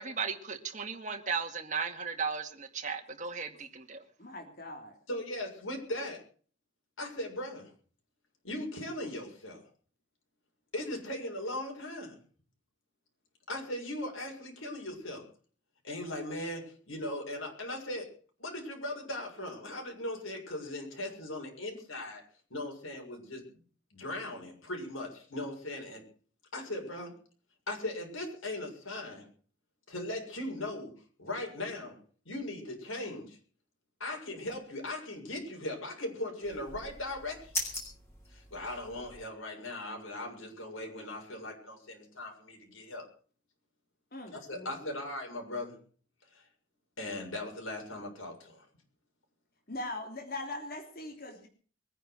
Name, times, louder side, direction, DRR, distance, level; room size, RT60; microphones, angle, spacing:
voice 1, 0.0-4.0, right 5 dB, 35° right, 5 dB, 2.2 m, -36 dB
voice 2, 4.2-4.9 44.1-44.9 49.7-51.5, left 2 dB, 45° left, 3 dB, 3.2 m, -41 dB
voice 3, 5.1-6.2 7.0-7.7 8.4-9.6 10.7-12.2 13.5-15.2 15.8-18.1 18.4-22.2 22.5-23.4 23.9-26.0 26.5-27.1 27.7-29.3 29.9-30.9 31.2-32.0 32.2-33.4 34.0-37.5 38.3-43.1 44.3-45.8 46.3-46.4 47.0-48.6, left 1 dB, 90° left, 1 dB, 6.8 m, -38 dB
sound 1, 36.4-39.2, left 1 dB, 15° left, 6.2 m, -40 dB
22.5 x 10.0 x 6.1 m, 0.43 s
head